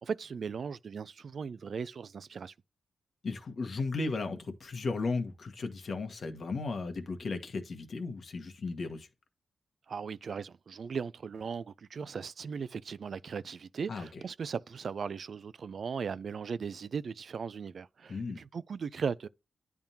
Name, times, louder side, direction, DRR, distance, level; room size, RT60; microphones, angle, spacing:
voice 1, 0.0-2.5 9.9-19.3, right 6 dB, 60° right, 0.4 m, -38 dB
voice 2, 3.2-9.1 13.9-14.2 18.1-18.4, left 3 dB, 55° left, 1.3 m, -35 dB
10.5 x 3.5 x 2.8 m
wide cardioid pair, 105°, 0 cm